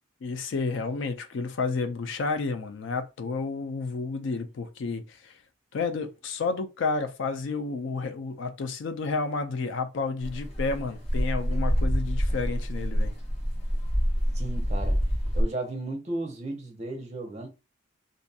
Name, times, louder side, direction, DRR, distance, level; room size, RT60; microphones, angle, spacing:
voice 1, 0.2-5.4 5.7-13.1, left 4 dB, 60° left, 0.4 m, -31 dB
sound 1, 10.2-15.4, equal, 30° left, 0.7 m, -27 dB
voice 2, 14.3-15.0 15.3-17.5, right 2 dB, 30° right, 0.6 m, -34 dB
2.5 x 2.2 x 2.6 m
head